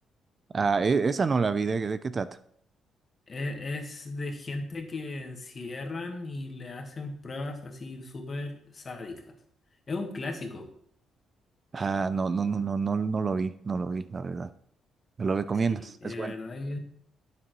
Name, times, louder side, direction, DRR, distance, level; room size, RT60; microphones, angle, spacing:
voice 1, 0.5-2.3 11.7-14.5 15.2-16.3, right 5 dB, 35° right, 14 dB, 0.3 m, -27 dB
voice 2, 3.3-9.3 9.9-10.7 15.7-16.8, left 2 dB, 35° left, 4 dB, 1.4 m, -36 dB
8.9 x 6.8 x 3.0 m, 0.67 s
cardioid pair, 90°, 0 cm